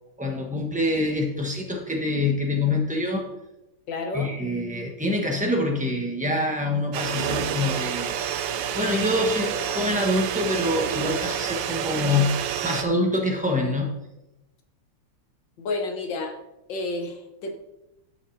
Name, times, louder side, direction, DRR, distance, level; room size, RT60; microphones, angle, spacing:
voice 1, 0.2-3.3 4.1-12.4 12.6-13.9, left 2 dB, 5° right, 0 dB, 0.6 m, -25 dB
voice 2, 3.9-4.3 15.6-16.4 16.7-17.5, left 2 dB, 60° left, 4 dB, 1.7 m, -30 dB
sound 1, 6.9-12.8, right 9 dB, 75° right, 1.1 m, -28 dB
12.0 x 6.7 x 2.7 m, 0.93 s
omnidirectional pair, 2.4 m